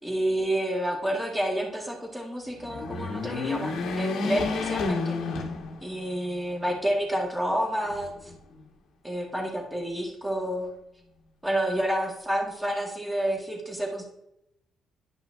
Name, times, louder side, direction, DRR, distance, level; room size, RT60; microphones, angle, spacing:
voice 1, 0.0-5.1 5.8-8.3 9.0-10.7 11.4-14.1, right 1 dB, 5° right, 0 dB, 1.9 m, -29 dB
sound 1, 2.6-6.2 6.6-6.7 7.8-8.6, left 3 dB, 85° left, 1.3 m, -30 dB
10.5 x 5.7 x 2.7 m, 0.83 s
cardioid pair, 90°, 0 cm